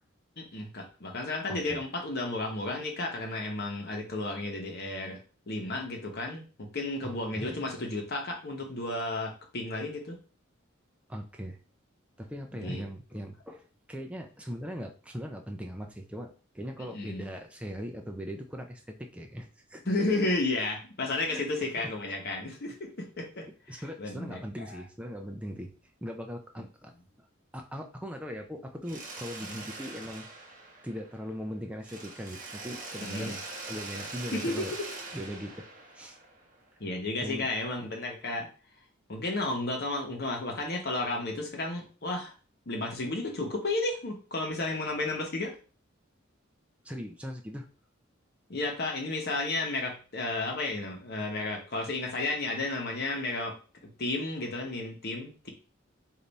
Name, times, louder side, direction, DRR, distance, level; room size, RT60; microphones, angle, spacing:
voice 1, 0.4-5.2 5.5-10.2 12.5-12.8 16.8-17.2 19.9-24.8 29.5-29.6 33.0-33.3 34.3-34.9 36.8-38.5 39.1-42.3 42.7-45.5 48.5-53.6 53.8-55.5, left 2 dB, 50° left, 2 dB, 1.0 m, -33 dB
voice 2, 1.5-1.8 7.0-7.6 11.1-11.6 12.2-19.8 21.2-21.9 23.7-25.7 26.0-26.9 27.5-30.3 30.8-33.4 33.7-34.7 35.1-35.7 35.9-36.2 37.2-37.5 46.8-47.7, equal, 5° right, 3 dB, 0.4 m, -40 dB
Mechanisms, 28.8-31.4 31.8-36.7, right 3 dB, 40° right, 0.8 m, -43 dB
3.4 x 2.6 x 4.0 m, 0.37 s
head